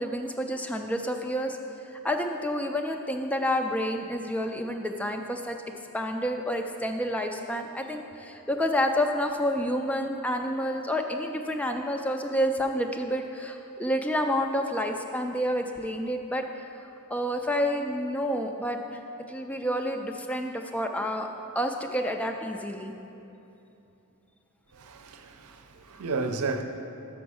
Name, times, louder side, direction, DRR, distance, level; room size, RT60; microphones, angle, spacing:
voice 1, 0.0-1.6 1.9-5.6 5.9-16.4 17.1-19.0 19.3-21.3 21.6-22.9, equal, 5° left, 0.3 m, -29 dB
voice 2, 24.7-26.6, right 4 dB, 80° right, 0.6 m, -33 dB
6.2 x 5.9 x 6.2 m
head